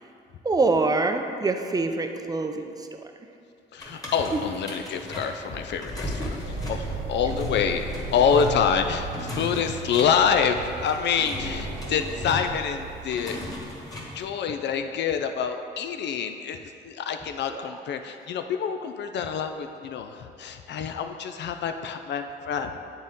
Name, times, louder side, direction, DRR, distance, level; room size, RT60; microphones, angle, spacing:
voice 1, 0.4-2.9 17.5-17.6, right 3 dB, 20° right, 6 dB, 0.5 m, -25 dB
voice 2, 3.7-13.4 14.1-22.8, left 7 dB, 65° left, 7 dB, 0.4 m, -27 dB
sound 1, 3.8-14.2, left 2 dB, 20° left, 1.6 m, -36 dB
sound 2, 6.3-9.3 11.3-12.1, equal, 90° left, 1.3 m, -38 dB
sound 3, 6.4-13.3, right 9 dB, 90° right, 0.5 m, -40 dB
8.8 x 3.9 x 3.6 m, 2.6 s
cardioid pair, 90°, 20 cm